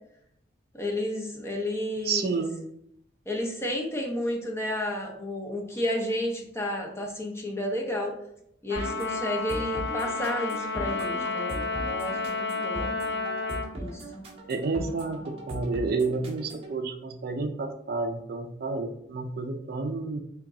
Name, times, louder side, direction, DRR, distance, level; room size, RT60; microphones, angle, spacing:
voice 1, 0.7-2.4 3.3-8.1 8.6-12.9 13.7-14.0, left 1 dB, 15° left, 0 dB, 0.6 m, -31 dB
voice 2, 2.0-2.6 14.5-20.2, right 4 dB, 50° right, 5 dB, 0.4 m, -30 dB
Trumpet, 8.7-13.7, left 4 dB, 70° left, 0.6 m, -31 dB
sound 1, 8.8-16.7, right 1 dB, 30° right, 0.8 m, -39 dB
3.5 x 2.9 x 3.6 m, 0.75 s
head